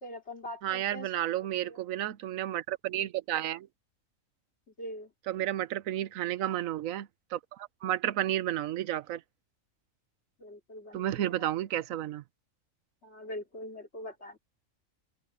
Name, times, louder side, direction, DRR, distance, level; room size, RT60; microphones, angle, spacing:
voice 1, 0.0-1.8 4.8-5.1 10.4-11.5 13.0-14.4, left 1 dB, 55° left, 3.2 m, -43 dB
voice 2, 0.6-3.7 5.3-9.2 10.9-12.2, right 12 dB, 85° right, 1.1 m, -32 dB
open air
omnidirectional pair, 1.4 m